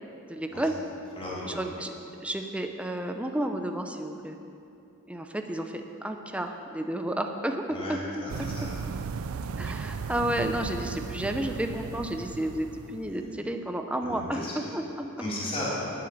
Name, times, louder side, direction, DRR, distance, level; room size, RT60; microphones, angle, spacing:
voice 1, 0.3-0.7 1.5-1.9 2.2-4.4 5.1-8.5 9.6-15.1, right 1 dB, 5° right, 5 dB, 0.6 m, -31 dB
voice 2, 1.2-1.6 7.7-8.7 13.1-13.3 14.0-14.7 15.2-15.7, left 1 dB, 25° left, -8 dB, 3.6 m, -35 dB
sound 1, 8.3-13.3, right 5 dB, 75° right, 0.4 m, -36 dB
9.9 x 8.1 x 9.5 m, 2.7 s
head